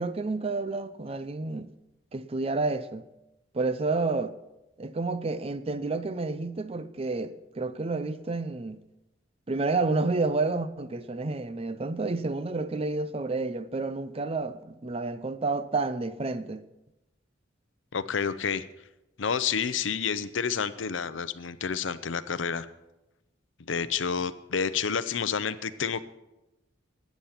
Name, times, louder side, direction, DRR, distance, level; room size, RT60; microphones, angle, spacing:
voice 1, 0.0-1.7 2.1-3.1 3.5-4.4 4.8-8.8 9.5-16.6, right 3 dB, 30° right, 0.5 m, -30 dB
voice 2, 17.9-18.6 19.2-22.7 23.7-26.0, left 6 dB, 85° left, 0.6 m, -29 dB
13.5 x 9.2 x 5.8 m
head